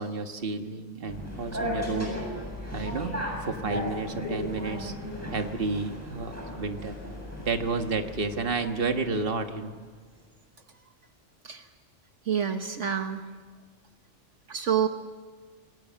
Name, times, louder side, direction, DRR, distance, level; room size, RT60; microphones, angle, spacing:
voice 1, 0.0-2.1 2.7-3.1 3.4-4.9 5.3-7.1 7.4-9.8, right 4 dB, 50° right, 6 dB, 1.7 m, -31 dB
sound 1, 1.1-9.4, left 1 dB, 10° right, 7.8 m, -36 dB
voice 2, 12.3-13.3 14.5-14.9, right 8 dB, 70° right, 6 dB, 1.5 m, -27 dB
27.5 x 19.5 x 7.5 m, 1.5 s
omnidirectional pair, 1.3 m